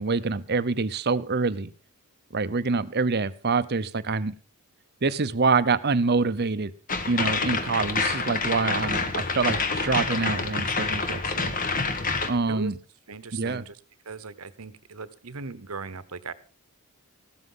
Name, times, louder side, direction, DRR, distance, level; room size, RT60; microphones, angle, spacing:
voice 1, 0.0-1.7 2.3-4.3 5.0-6.7 7.1-11.5 12.3-12.8 13.3-13.6, right 4 dB, 45° right, 14 dB, 0.7 m, -26 dB
sound 1, 6.9-12.3, left 4 dB, 40° left, 1.5 m, -27 dB
voice 2, 13.1-13.8 14.0-16.3, right 4 dB, 70° right, 14 dB, 1.1 m, -38 dB
15.5 x 13.0 x 3.9 m, 0.35 s
head